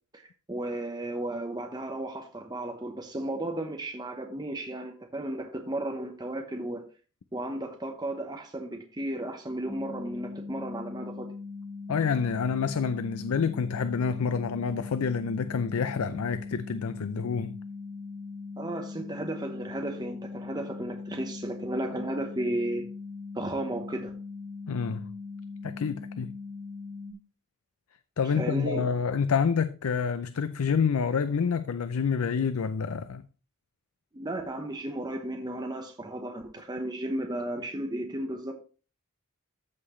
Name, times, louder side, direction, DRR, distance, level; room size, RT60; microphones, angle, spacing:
voice 1, 0.1-6.8 7.3-11.3 18.6-22.9 23.3-24.1 28.2-28.9 34.1-38.5, right 1 dB, 20° right, 0.9 m, -34 dB
sound 1, 9.7-27.1, left 4 dB, 20° left, 1.8 m, -40 dB
voice 2, 11.9-17.6 24.7-25.1 25.6-26.3 28.2-33.3, left 6 dB, 90° left, 0.5 m, -28 dB
14.0 x 5.8 x 3.1 m
head